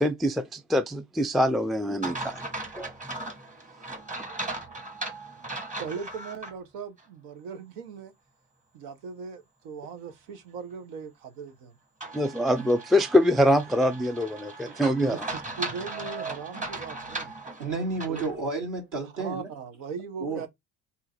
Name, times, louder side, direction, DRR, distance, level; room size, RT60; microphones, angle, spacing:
voice 1, 0.0-2.4 2.7-2.9 12.1-15.2, left 1 dB, ahead, 0.3 m, -24 dB
sound 1, 2.0-6.5 7.0-7.1 12.0-18.4, right 2 dB, 20° right, 1.4 m, -37 dB
voice 2, 3.8-4.5 5.8-8.1 8.7-11.8 14.7-14.8 15.1-17.3 18.1-18.2 19.2-20.5, right 5 dB, 80° right, 1.1 m, -39 dB
voice 3, 17.6-19.5 20.2-20.5, right 3 dB, 60° right, 2.5 m, -31 dB
3.7 x 2.8 x 4.3 m
supercardioid pair, 85°, 36 cm